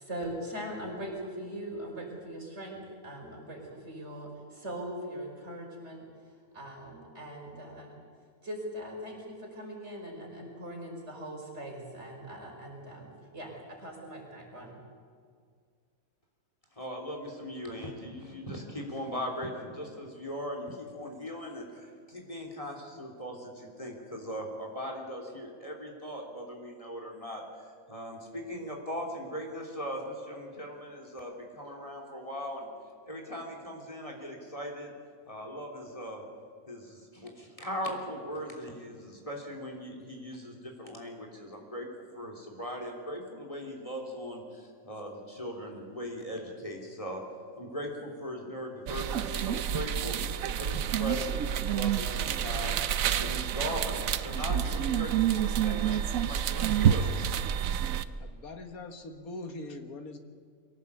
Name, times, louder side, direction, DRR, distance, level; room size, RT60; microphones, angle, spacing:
voice 1, 0.0-8.0 8.4-13.1 13.3-14.8, right 1 dB, 50° right, -1 dB, 5.4 m, -41 dB
voice 2, 16.8-27.4 27.9-32.7 33.1-34.9 35.2-36.2 36.7-41.9 42.1-47.2 47.6-50.2 50.6-52.8 53.1-57.1, equal, 25° left, 1 dB, 3.3 m, -39 dB
sound 1, 48.9-58.0, right 9 dB, 70° right, 1.2 m, -28 dB
voice 3, 58.2-60.2, left 2 dB, 80° left, 7 dB, 1.9 m, -42 dB
23.0 x 17.5 x 8.4 m, 2.1 s
omnidirectional pair, 1.5 m